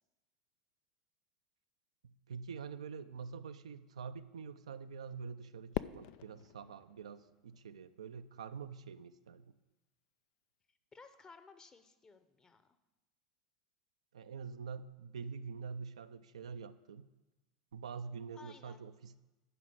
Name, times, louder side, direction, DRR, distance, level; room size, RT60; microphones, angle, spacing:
voice 1, 2.0-9.5 14.1-17.1 17.7-19.2, right 5 dB, 85° right, 10 dB, 0.4 m, -46 dB
Fireworks, 5.7-8.1, left 14 dB, 55° left, 0.3 m, -43 dB
voice 2, 10.9-12.6 18.3-18.8, left 4 dB, 20° left, 10 dB, 0.9 m, -57 dB
11.0 x 5.0 x 8.0 m, 1.1 s
hypercardioid pair, 90°, 3 cm